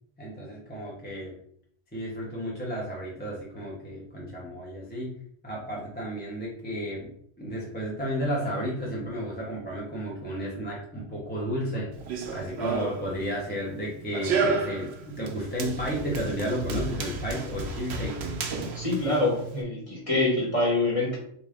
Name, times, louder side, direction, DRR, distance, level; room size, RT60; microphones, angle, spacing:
voice 1, 0.2-1.3 1.9-5.2 5.4-7.1 7.4-11.9 12.3-18.2, equal, 10° left, -4 dB, 0.8 m, -32 dB
Run, 11.9-19.6, right 4 dB, 70° right, 0.9 m, -32 dB
voice 2, 18.7-21.2, left 2 dB, 30° left, -4 dB, 1.2 m, -25 dB
3.7 x 2.7 x 3.5 m, 0.65 s
omnidirectional pair, 1.2 m